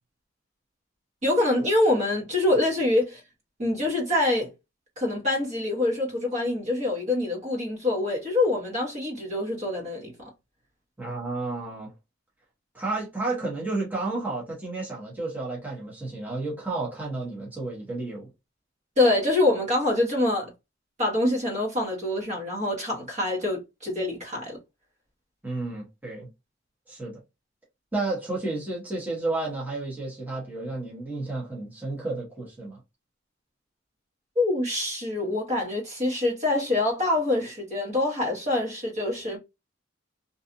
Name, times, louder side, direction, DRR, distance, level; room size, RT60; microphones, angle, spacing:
voice 1, 1.2-3.2 3.6-4.5 5.0-10.1 19.0-20.5 21.0-24.6 34.4-39.4, left 2 dB, 35° right, 1.0 m, -25 dB
voice 2, 11.0-11.9 12.7-18.3 25.4-26.3 26.9-27.2 27.9-32.8, right 2 dB, 10° right, 0.9 m, -31 dB
2.7 x 2.4 x 2.5 m
head